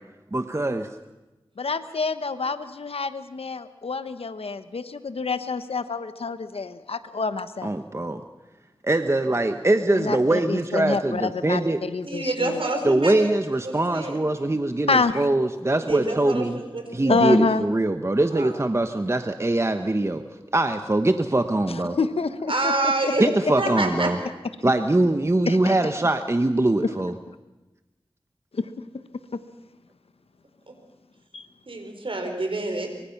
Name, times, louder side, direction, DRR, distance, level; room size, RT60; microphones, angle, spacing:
voice 1, 0.3-0.9 7.6-8.2 8.8-11.8 12.8-16.6 16.9-20.2 20.5-22.0 23.2-24.2 24.6-27.1, right 2 dB, 30° right, 8 dB, 1.1 m, -22 dB
voice 2, 1.6-7.7 9.9-12.6 14.9-15.3 17.1-17.7 21.7-23.1 25.5-25.8 26.8-26.9 28.5-28.7 29.3-29.4 31.3-31.5, left 4 dB, 85° left, 11 dB, 1.1 m, -27 dB
voice 3, 12.0-13.3 13.6-14.2 15.7-17.2 18.3-18.5 22.5-23.2 23.6-24.1 31.7-32.9, right 2 dB, 65° right, 4 dB, 4.8 m, -27 dB
24.5 x 23.5 x 5.9 m, 1.1 s
wide cardioid pair, 60°, 10 cm